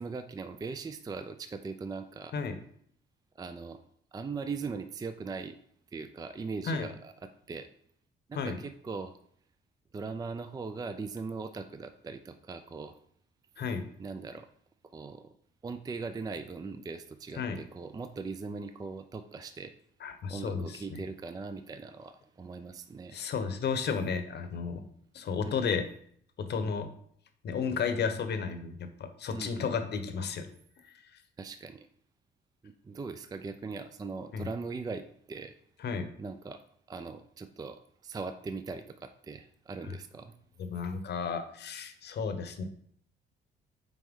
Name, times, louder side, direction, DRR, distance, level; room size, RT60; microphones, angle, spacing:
voice 1, 0.0-2.3 3.4-3.8 4.1-5.6 5.9-7.7 8.3-9.2 9.9-13.0 14.0-14.5 14.9-15.3 15.6-19.7 20.3-23.2 25.4-25.6 29.3-29.8 31.4-31.9 32.6-35.5 36.2-36.6 36.9-40.3, right 4 dB, 20° right, 10 dB, 0.4 m, -40 dB
voice 2, 20.0-21.0 23.1-24.8 25.1-25.8 26.4-26.9 27.4-30.5 34.3-34.5 35.8-36.1 40.6-42.6, left 5 dB, 60° left, 8 dB, 0.9 m, -33 dB
6.1 x 4.3 x 3.6 m, 0.64 s
cardioid pair, 90°, 20 cm